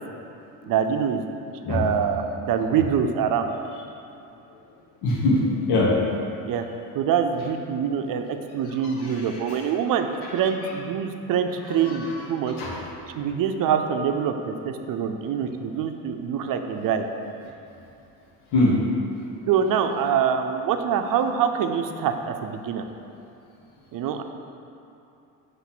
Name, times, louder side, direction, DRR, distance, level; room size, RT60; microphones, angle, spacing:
voice 1, 0.6-1.2 1.7-3.5 6.5-6.6 6.9-10.1 10.3-12.5 13.2-17.1 19.5-22.8 23.9-24.2, right 7 dB, 55° right, 6 dB, 0.6 m, -25 dB
voice 2, 5.0-5.9 7.9-8.0 8.6-9.7 10.2-10.7 11.6-13.6 13.9-14.0 15.4-15.5 16.3-16.4 18.5-18.8, left 2 dB, 75° left, -2 dB, 1.5 m, -26 dB
7.3 x 3.2 x 5.9 m, 2.7 s
supercardioid pair, 80°, 40 cm